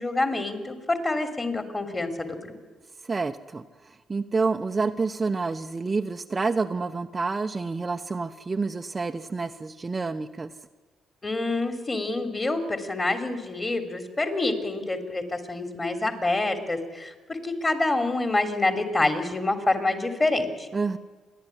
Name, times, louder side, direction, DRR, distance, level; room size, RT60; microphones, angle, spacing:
voice 1, 0.0-2.6 11.2-20.7, left 2 dB, 25° left, 7 dB, 3.3 m, -27 dB
voice 2, 3.0-10.5 20.7-21.0, right 4 dB, 25° right, 6 dB, 0.9 m, -28 dB
28.5 x 11.5 x 9.9 m, 1.4 s
cardioid pair, 90°, 0 cm